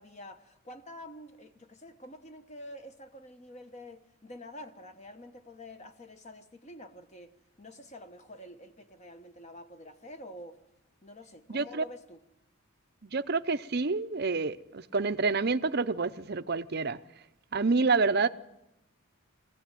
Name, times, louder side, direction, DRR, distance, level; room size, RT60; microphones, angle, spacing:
voice 1, 0.0-10.6 11.0-12.2, left 1 dB, 30° left, 1.2 m, -48 dB
voice 2, 11.5-11.8 13.0-17.0 17.5-18.3, right 4 dB, 45° right, 0.7 m, -28 dB
22.0 x 16.5 x 9.2 m
head